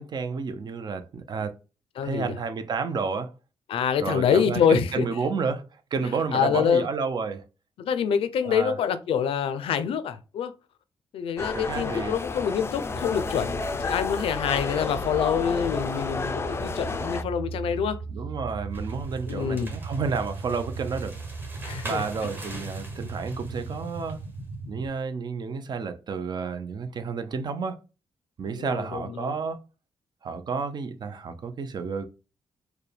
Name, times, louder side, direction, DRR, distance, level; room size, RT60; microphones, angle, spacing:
voice 1, 0.0-1.5 2.0-3.3 4.0-7.4 8.4-8.8 11.5-12.2 18.1-21.2 21.8-24.2 24.7-27.8 28.4-29.6 30.2-32.0, right 5 dB, 50° right, 0.6 m, -31 dB
voice 2, 2.0-2.3 3.7-5.1 6.3-6.9 7.8-10.5 11.1-18.0 19.3-19.7 21.6-22.0 28.5-29.4, left 7 dB, 85° left, 0.5 m, -26 dB
sound 1, 11.4-17.2, left 4 dB, 25° left, 0.4 m, -31 dB
sound 2, 12.9-24.9, right 3 dB, 65° right, 1.1 m, -37 dB
sound 3, 18.7-24.2, right 1 dB, 20° right, 1.1 m, -44 dB
4.6 x 2.2 x 3.2 m
cardioid pair, 95°, 9 cm